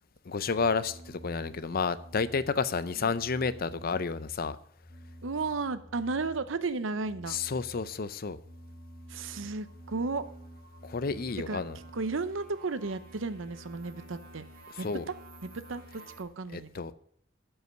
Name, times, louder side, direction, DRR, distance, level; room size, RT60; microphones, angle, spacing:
voice 1, 0.3-4.6 7.3-8.4 10.8-11.8 14.8-15.0 16.5-16.9, left 5 dB, 50° left, 0.6 m, -31 dB
sound 1, 0.6-2.8 3.1-6.6 6.9-16.2, right 1 dB, 50° right, 2.2 m, -50 dB
voice 2, 5.2-7.4 9.1-10.3 11.5-11.6 11.9-14.4 14.8-15.1 15.4-16.7, right 3 dB, 85° right, 0.8 m, -34 dB
12.0 x 5.6 x 6.7 m
head